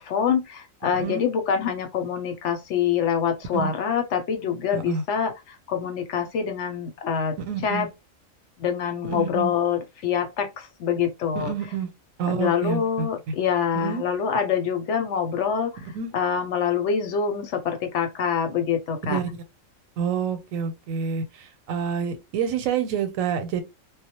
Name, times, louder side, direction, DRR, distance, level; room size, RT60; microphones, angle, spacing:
voice 1, 0.0-7.3 7.6-7.9 8.6-11.5 12.3-15.8 16.1-19.2, left 7 dB, 70° left, 0.8 m, -25 dB
voice 2, 4.7-5.0 7.4-7.9 9.0-9.5 11.4-11.9 12.2-13.1 13.7-14.0 15.8-16.1 19.0-19.4 20.0-23.6, right 7 dB, 90° right, 1.0 m, -28 dB
2.2 x 2.0 x 2.8 m
omnidirectional pair, 1.4 m